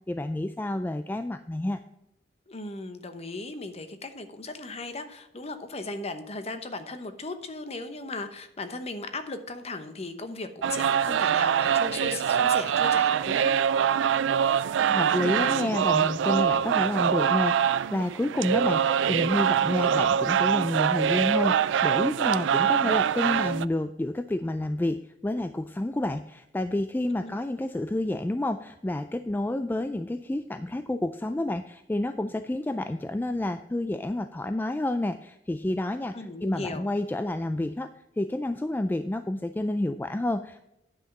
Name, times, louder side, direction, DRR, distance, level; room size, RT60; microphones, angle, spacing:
voice 1, 0.1-1.8 14.8-36.1 36.4-37.9 38.2-40.7, left 1 dB, 10° left, 9 dB, 0.3 m, -29 dB
voice 2, 2.5-13.5 27.1-27.3 36.1-36.9, left 3 dB, 35° left, 9 dB, 0.9 m, -37 dB
sound 1, 10.6-23.7, right 8 dB, 85° right, 0.3 m, -24 dB
9.9 x 5.8 x 5.2 m, 0.88 s
head